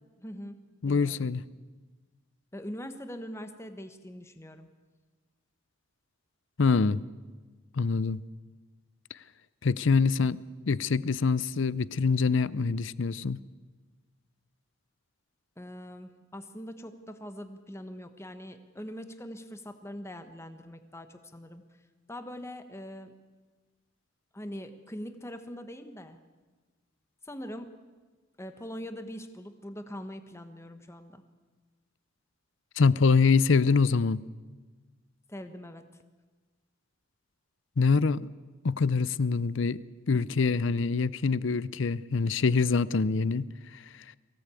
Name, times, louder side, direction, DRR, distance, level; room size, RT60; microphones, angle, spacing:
voice 1, 0.2-0.6 0.8-1.3 2.5-4.7 15.6-21.6 22.1-23.1 24.3-26.2 27.2-27.7 28.4-31.2 35.3-35.9, equal, 15° left, 8 dB, 1.2 m, -42 dB
voice 2, 0.8-1.4 6.6-7.0 7.8-8.2 9.6-13.4 32.8-34.2 37.8-38.3 38.6-39.8 40.1-43.5, left 4 dB, 60° left, 19 dB, 0.6 m, -25 dB
23.0 x 16.5 x 8.3 m, 1.3 s
head